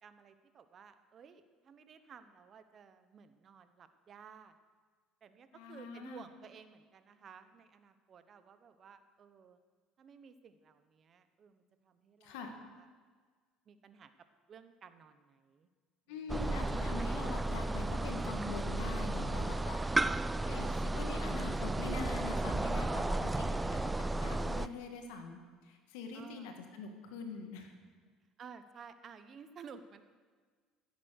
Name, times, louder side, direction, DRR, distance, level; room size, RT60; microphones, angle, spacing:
voice 1, 0.0-4.5 5.2-9.6 10.0-12.4 12.7-12.9 13.7-14.1 14.5-15.7 16.1-16.2 26.1-26.6 28.4-30.0, right 6 dB, 40° right, 10 dB, 1.0 m, -55 dB
voice 2, 5.5-6.2 12.2-12.5 16.1-20.1 20.4-27.7, left 4 dB, 85° left, 4 dB, 1.8 m, -44 dB
sound 1, 16.3-24.7, right 2 dB, 10° right, 0.4 m, -34 dB
15.0 x 8.4 x 6.5 m, 1.5 s
supercardioid pair, 100°, 0 cm